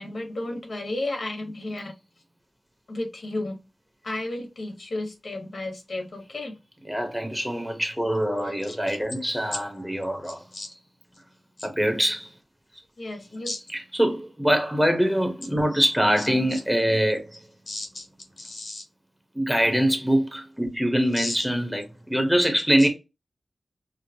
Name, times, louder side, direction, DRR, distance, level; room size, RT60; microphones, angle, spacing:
voice 1, 0.0-1.9 2.9-3.6 4.0-6.5 8.4-8.8 10.2-10.7 11.6-11.7 13.0-13.6 16.5-16.6 17.7-18.1 18.4-18.8 21.1-21.4, left 2 dB, 70° left, 1.1 m, -33 dB
voice 2, 6.9-10.5 11.6-12.3 13.7-17.4 19.3-22.9, equal, 5° right, 0.8 m, -24 dB
4.4 x 2.0 x 2.7 m
wide cardioid pair, 100°, 0 cm